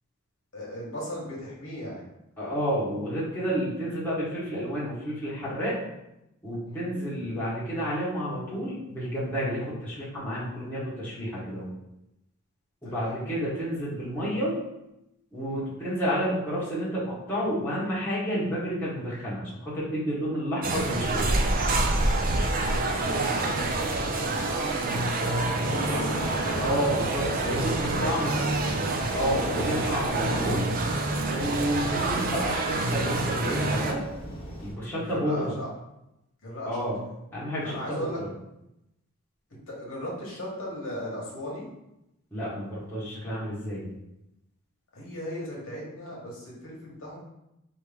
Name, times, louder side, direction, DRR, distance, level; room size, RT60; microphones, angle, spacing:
voice 1, 0.5-2.0 6.7-6.9 12.8-13.1 15.5-15.7 23.0-26.3 27.7-29.1 34.9-35.7 36.4-36.8 37.6-38.2 39.7-41.7 44.9-47.2, equal, 70° left, -4 dB, 1.4 m, -37 dB
voice 2, 2.4-5.8 6.4-11.7 12.8-14.6 15.3-21.4 26.6-28.3 29.1-30.7 31.2-34.1 34.6-35.5 36.6-37.0 37.3-38.3 42.3-43.9, equal, 10° left, -10 dB, 1.5 m, -30 dB
sound 1, 20.6-33.9, right 2 dB, 40° right, 0.4 m, -27 dB
sound 2, 25.3-34.7, equal, 25° left, 1.1 m, -36 dB
4.4 x 3.1 x 3.5 m, 0.86 s
head